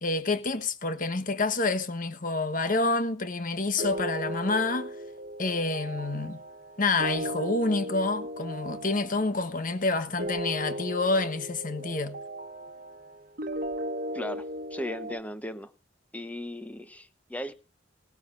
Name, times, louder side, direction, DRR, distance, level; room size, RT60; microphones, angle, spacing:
voice 1, 0.0-4.9 5.4-6.4 6.8-12.2, left 3 dB, 45° left, 1.2 m, -28 dB
sound 1, 3.8-15.2, right 1 dB, 45° right, 1.3 m, -36 dB
voice 2, 14.1-15.7 16.1-17.5, left 1 dB, 10° left, 0.9 m, -37 dB
19.5 x 14.0 x 2.5 m
head